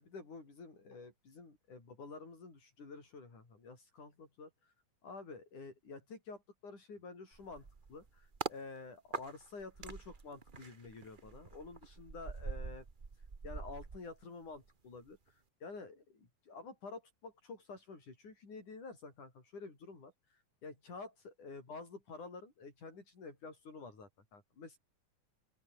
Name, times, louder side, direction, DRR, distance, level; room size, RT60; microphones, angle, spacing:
voice 1, 0.0-4.7 5.0-12.9 13.4-24.8, left 4 dB, 75° left, 8.1 m, -50 dB
sound 1, 7.3-8.6 9.1-14.7 15.0-15.3, right 4 dB, 80° right, 0.4 m, -45 dB
open air
omnidirectional pair, 3.5 m